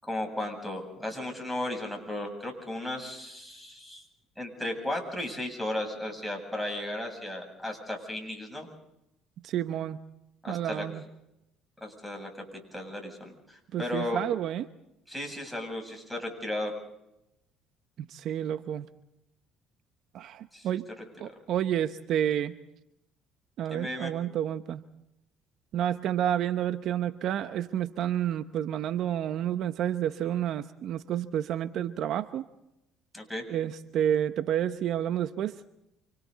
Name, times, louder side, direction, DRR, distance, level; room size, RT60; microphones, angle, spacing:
voice 1, 0.0-4.0 4.4-8.7 10.4-10.9 11.8-12.3 12.7-14.2 15.1-16.7 20.5-20.7 23.7-24.1 33.1-33.4, left 1 dB, ahead, 4 dB, 8.0 m, -35 dB
voice 2, 9.4-10.0 10.5-11.0 13.7-14.7 18.1-18.9 20.1-20.9 21.2-22.5 23.6-24.8 25.7-32.5 33.5-35.6, right 10 dB, 65° right, 11 dB, 0.9 m, -30 dB
29.5 x 25.5 x 4.1 m, 0.85 s
supercardioid pair, 85°, 0 cm